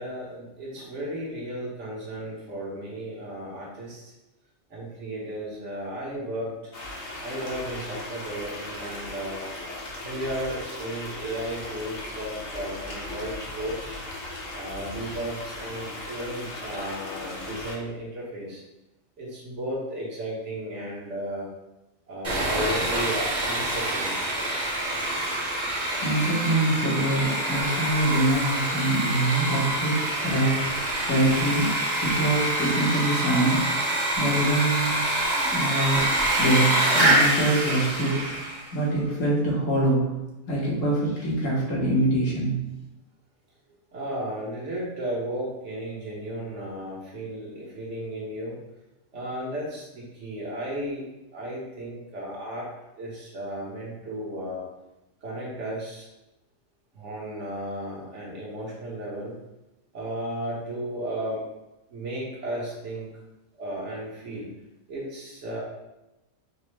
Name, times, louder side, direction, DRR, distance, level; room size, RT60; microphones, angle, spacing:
voice 1, 0.0-4.1 4.7-6.7 7.2-9.4 10.0-14.0 14.5-18.6 19.2-21.5 22.1-24.2 32.0-32.2 38.8-38.9 43.9-48.6 49.1-51.0 51.3-52.7 52.9-54.6 55.2-56.1 56.9-59.3 59.9-61.4 61.9-63.1 63.5-64.5 64.9-65.6, right 1 dB, 70° right, -4 dB, 1.3 m, -34 dB
sound 1, 6.7-17.8, left 2 dB, 65° left, 1.1 m, -37 dB
Sawing, 22.2-38.7, right 1 dB, 35° right, 0.9 m, -26 dB
voice 2, 26.0-31.7 32.0-33.9 34.2-38.4 38.7-40.1 40.5-42.6, right 1 dB, 80° left, -5 dB, 1.5 m, -25 dB
5.2 x 2.0 x 3.2 m, 0.96 s
omnidirectional pair, 1.3 m